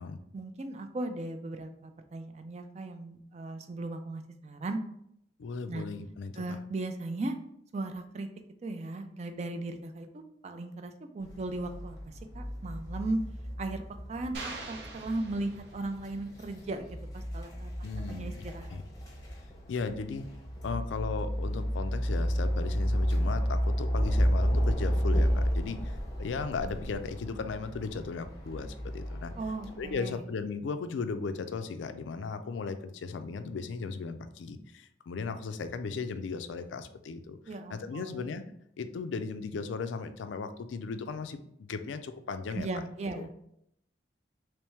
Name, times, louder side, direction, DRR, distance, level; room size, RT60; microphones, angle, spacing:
voice 1, 0.3-4.8 5.7-5.8 6.4-7.4 7.7-8.3 8.6-13.2 13.6-13.8 14.1-17.7 18.1-18.7 29.4-30.2 37.5-38.2 42.5-43.3, right 2 dB, 35° right, 7 dB, 0.4 m, -37 dB
voice 2, 5.4-6.4 17.8-18.4 18.7-18.8 19.7-20.3 20.6-29.3 29.8-38.4 38.8-42.8 43.1-43.3, left 4 dB, 90° left, 9 dB, 0.4 m, -36 dB
sound 1, 11.2-29.9, equal, 20° left, 0.7 m, -32 dB
sound 2, 14.3-16.1, right 3 dB, 65° right, 0.7 m, -43 dB
3.4 x 3.1 x 3.0 m, 0.74 s
head